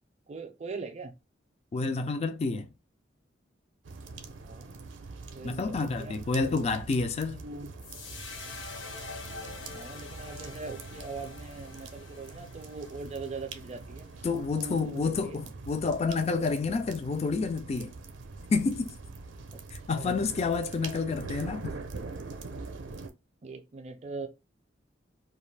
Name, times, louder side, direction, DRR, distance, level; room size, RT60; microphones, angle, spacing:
voice 1, 0.3-1.1 4.4-4.8 5.3-6.6 7.4-7.7 9.7-14.1 14.5-15.4 19.5-19.6 19.9-20.2 23.4-24.3, right 4 dB, 35° right, 0.5 m, -41 dB
voice 2, 1.7-2.7 5.4-7.4 14.2-17.9 18.5-19.0 19.7-21.7, left 4 dB, 35° left, 0.3 m, -29 dB
sound 1, 3.9-23.1, right 3 dB, 90° right, 0.5 m, -44 dB
sound 2, 7.8-14.2, left 3 dB, 75° left, 0.7 m, -45 dB
2.4 x 2.3 x 3.2 m
head